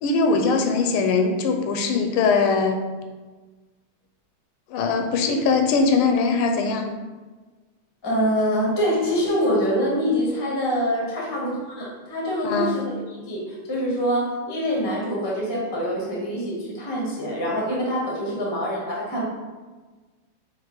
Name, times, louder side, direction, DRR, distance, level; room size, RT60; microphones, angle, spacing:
voice 1, 0.0-2.8 4.7-6.9 12.4-12.7, left 4 dB, 90° left, 5 dB, 1.5 m, -21 dB
voice 2, 8.0-12.8 13.1-19.2, equal, 40° left, -3 dB, 0.3 m, -25 dB
4.5 x 2.4 x 4.5 m, 1.3 s
omnidirectional pair, 2.3 m